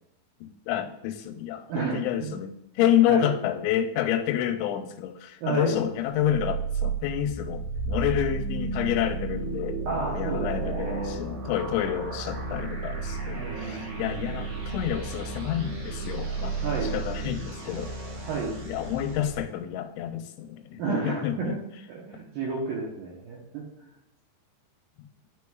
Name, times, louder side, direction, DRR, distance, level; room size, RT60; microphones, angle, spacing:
voice 1, 0.4-9.8 10.1-16.5 16.9-17.9 18.7-21.6, left 10 dB, 90° left, 8 dB, 2.9 m, -28 dB
voice 2, 1.7-2.4 2.8-3.3 5.4-5.8 9.9-11.2 13.4-14.6 16.6-16.9 18.3-18.5 20.8-21.6 21.9-23.9, right 4 dB, 75° right, -4 dB, 2.1 m, -32 dB
sound 1, 6.2-19.4, right 4 dB, 50° right, 2.9 m, -33 dB
12.0 x 4.9 x 2.3 m, 0.86 s
omnidirectional pair, 5.2 m